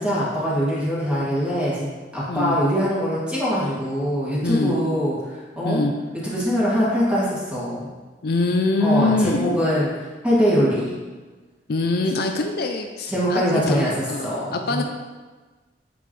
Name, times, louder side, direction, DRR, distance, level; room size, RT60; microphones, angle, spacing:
voice 1, 0.0-1.9 2.1-5.8 6.2-7.9 8.8-9.9 10.2-11.0 13.1-13.9 14.2-14.8, equal, 5° right, -9 dB, 2.1 m, -22 dB
voice 2, 4.4-4.8 5.6-5.9 8.2-9.6 11.7-14.8, left 2 dB, 60° left, 4 dB, 0.5 m, -23 dB
7.8 x 5.3 x 3.2 m, 1.3 s
head